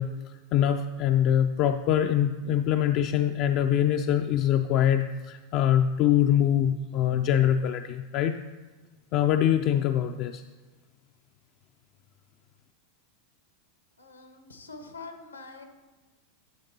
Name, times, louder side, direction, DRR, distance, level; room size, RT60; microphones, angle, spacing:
voice 1, 0.0-8.4 9.1-10.4, left 10 dB, 50° left, 7 dB, 0.3 m, -24 dB
voice 2, 14.0-15.6, left 3 dB, 90° left, 6 dB, 1.0 m, -44 dB
13.0 x 7.0 x 2.7 m, 1.3 s
hypercardioid pair, 90°, 0 cm